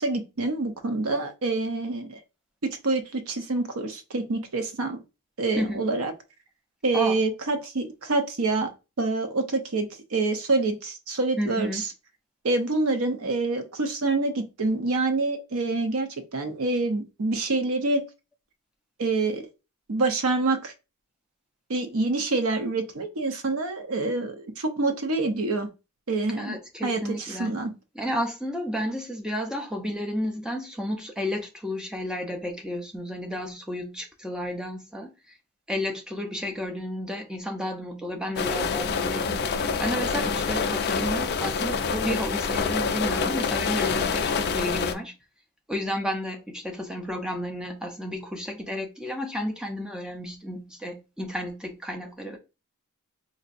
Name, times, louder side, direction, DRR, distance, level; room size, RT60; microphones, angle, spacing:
voice 1, 0.0-2.2 2.6-5.0 5.4-6.1 6.8-8.7 9.0-11.9 12.4-18.0 19.0-19.4 19.9-20.7 21.7-25.7 26.1-26.6 26.8-27.7, right 3 dB, 65° right, 0.7 m, -26 dB
voice 2, 5.6-5.9 6.9-7.2 11.4-11.8 26.4-27.5 28.0-35.1 35.7-45.1 45.7-52.4, equal, 5° right, 0.6 m, -32 dB
sound 1, 38.4-44.9, left 5 dB, 45° left, 0.4 m, -26 dB
4.2 x 2.7 x 2.5 m
head